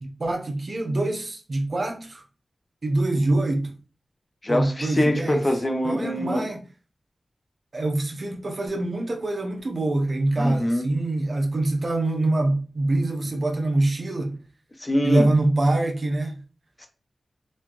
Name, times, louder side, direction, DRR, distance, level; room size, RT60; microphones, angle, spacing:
voice 1, 0.0-2.2 2.8-3.7 4.5-5.4 5.8-6.6 7.7-14.4 15.0-16.4, right 2 dB, 60° right, 0.6 m, -24 dB
voice 2, 4.4-6.5 10.4-10.9 14.8-15.3, left 1 dB, 35° left, 0.6 m, -24 dB
3.1 x 2.2 x 2.5 m
cardioid pair, 45°, 0 cm